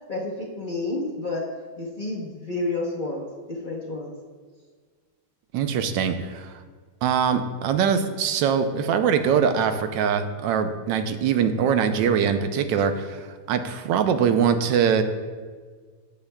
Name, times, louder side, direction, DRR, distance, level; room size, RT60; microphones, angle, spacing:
voice 1, 0.1-1.4 1.8-4.1, left 2 dB, 45° left, -4 dB, 0.7 m, -30 dB
voice 2, 5.5-6.5 7.0-15.0, right 7 dB, 85° right, 9 dB, 1.3 m, -23 dB
12.0 x 7.2 x 2.2 m, 1.6 s
omnidirectional pair, 1.9 m